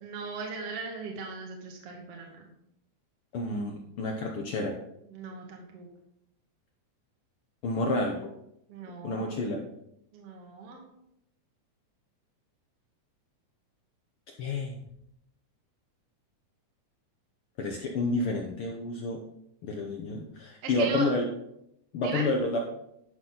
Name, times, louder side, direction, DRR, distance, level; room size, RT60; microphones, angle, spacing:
voice 1, 0.0-2.4 5.1-5.9 8.7-9.4 10.1-10.8 20.6-21.1 22.0-22.3, right 4 dB, 60° right, 0 dB, 2.0 m, -38 dB
voice 2, 3.3-4.8 7.6-8.3 9.0-9.6 14.4-14.8 17.6-19.2 19.6-21.2 21.9-22.6, left 2 dB, 75° left, 1 dB, 1.2 m, -29 dB
11.0 x 6.0 x 3.9 m, 0.79 s
omnidirectional pair, 3.5 m